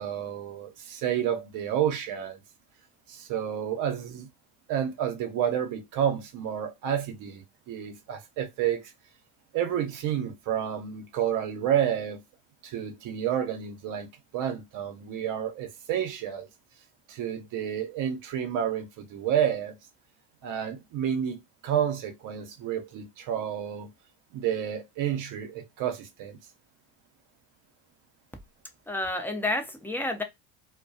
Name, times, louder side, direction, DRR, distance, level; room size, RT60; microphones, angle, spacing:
voice 1, 0.0-2.4 3.1-4.3 4.7-8.9 9.5-12.2 12.6-14.1 14.3-16.5 17.1-19.7 20.4-23.9 24.3-26.4, right 9 dB, 50° right, 0.8 m, -30 dB
voice 2, 28.9-30.2, left 2 dB, 5° left, 0.6 m, -30 dB
2.2 x 2.2 x 2.6 m
hypercardioid pair, 80°, 39 cm